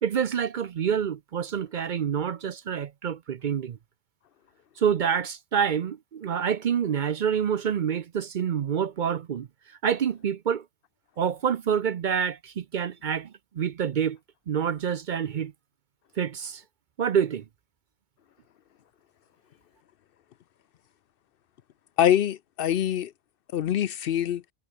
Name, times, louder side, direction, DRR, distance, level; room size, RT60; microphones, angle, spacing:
voice 1, 0.0-3.8 4.8-9.5 9.8-10.6 11.2-14.2 14.5-15.5 16.2-16.6 17.0-17.4, right 8 dB, 55° right, 0.7 m, -27 dB
voice 2, 22.0-23.1 23.5-24.4, left 10 dB, 65° left, 0.7 m, -24 dB
omnidirectional pair, 1.1 m